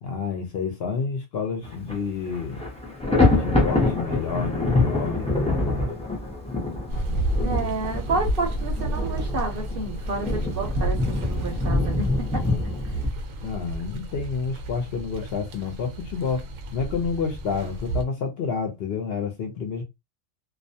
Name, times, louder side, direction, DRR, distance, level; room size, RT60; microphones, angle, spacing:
voice 1, 0.0-2.6 3.3-5.9 13.4-16.5 16.7-19.8, left 5 dB, 60° left, 0.7 m, -29 dB
Thunder, 1.6-2.0 2.3-13.1, left 2 dB, 10° left, 0.3 m, -25 dB
sound 1, 6.9-18.0, right 1 dB, 85° right, 1.0 m, -31 dB
voice 2, 7.4-12.4, right 3 dB, 55° right, 0.7 m, -30 dB
2.4 x 2.1 x 2.6 m
omnidirectional pair, 1.3 m